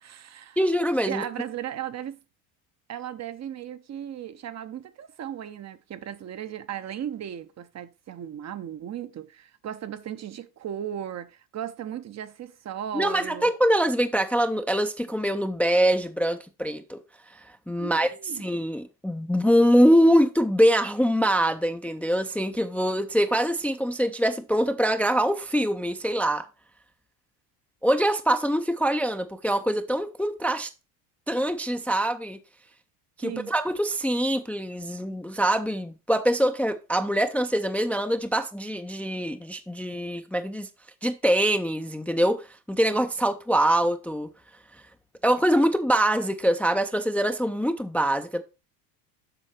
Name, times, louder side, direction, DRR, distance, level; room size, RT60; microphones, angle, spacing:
voice 1, 0.0-0.6 1.1-2.2 2.9-13.5 17.8-18.5 33.2-33.5, right 10 dB, 35° right, 0.7 m, -36 dB
voice 2, 0.6-1.2 12.9-17.0 17.3-18.1 18.4-26.5 27.8-30.7 31.3-32.4 33.2-40.7 41.0-44.3 45.2-48.4, equal, 5° left, 0.5 m, -24 dB
7.9 x 5.6 x 4.3 m
supercardioid pair, 90°, 48 cm